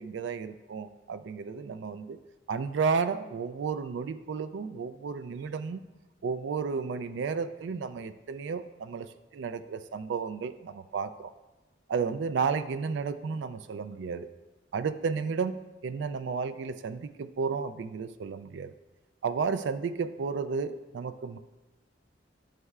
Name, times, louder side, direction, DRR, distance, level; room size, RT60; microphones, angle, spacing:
voice 1, 0.0-2.2 2.5-5.8 6.2-9.1 9.3-11.3 11.9-14.3 14.7-18.7 19.2-21.4, right 5 dB, 70° right, 12 dB, 0.3 m, -32 dB
11.0 x 5.4 x 2.4 m, 1.1 s
head